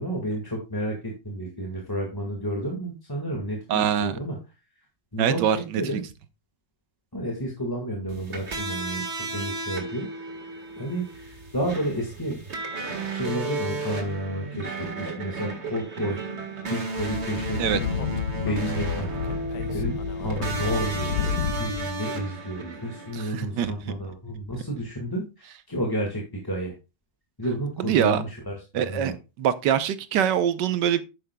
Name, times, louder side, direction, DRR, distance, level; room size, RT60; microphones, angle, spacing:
voice 1, 0.0-4.4 5.1-6.0 7.1-10.1 10.7-12.4 13.1-16.2 16.7-18.0 18.4-19.5 19.7-21.2 21.6-26.7 27.4-28.5 28.8-29.1, right 1 dB, 15° left, 1.4 m, -31 dB
voice 2, 3.7-4.1 5.2-6.0 9.4-9.5 17.6-17.8 23.1-23.7 27.8-28.2 28.7-29.1 29.4-31.0, right 9 dB, 70° right, 1.3 m, -24 dB
sound 1, 8.1-23.3, right 3 dB, 35° right, 1.7 m, -34 dB
Speech / Wind, 17.0-21.9, left 7 dB, 70° left, 1.2 m, -30 dB
10.5 x 8.7 x 2.2 m
omnidirectional pair, 2.0 m